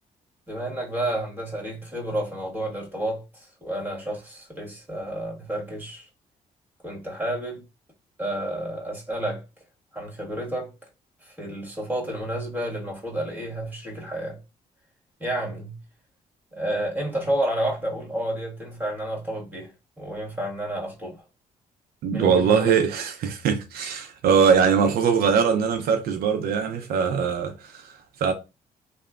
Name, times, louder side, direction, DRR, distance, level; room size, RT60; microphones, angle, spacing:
voice 1, 0.5-6.1 6.8-7.6 8.2-9.4 9.9-10.7 11.2-14.4 15.2-15.8 16.5-21.2 22.1-22.7, right 1 dB, 10° right, 1.5 m, -30 dB
voice 2, 22.0-28.3, right 6 dB, 75° right, 0.5 m, -22 dB
2.9 x 2.1 x 2.3 m
supercardioid pair, 70°, 16 cm